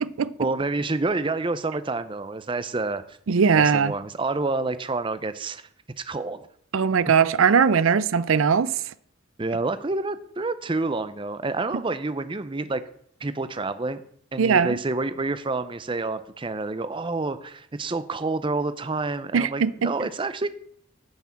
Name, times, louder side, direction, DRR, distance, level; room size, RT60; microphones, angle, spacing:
voice 1, 0.4-3.0 3.5-5.6 6.0-6.4 9.4-12.8 13.2-14.0 14.3-20.5, right 3 dB, 25° right, 0.6 m, -28 dB
voice 2, 3.3-3.9 6.7-8.7 14.4-14.8 19.3-19.9, right 6 dB, 80° right, 0.5 m, -20 dB
10.5 x 6.1 x 7.0 m
head